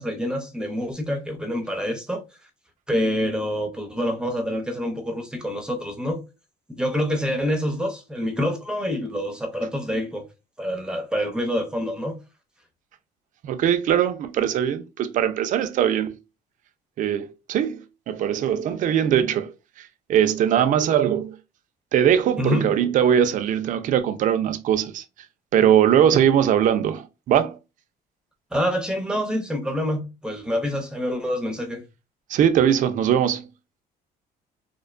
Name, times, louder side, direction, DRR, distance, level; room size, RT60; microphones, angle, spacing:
voice 1, 0.0-2.2 2.9-6.2 6.8-10.2 10.6-12.2 18.5-18.6 22.4-22.7 28.5-31.8, equal, 5° right, 0.6 m, -26 dB
voice 2, 13.4-16.2 17.0-21.4 21.9-25.0 25.5-27.6 32.3-33.5, right 9 dB, 50° right, 0.4 m, -21 dB
2.5 x 2.1 x 2.4 m
cardioid pair, 110°, 17 cm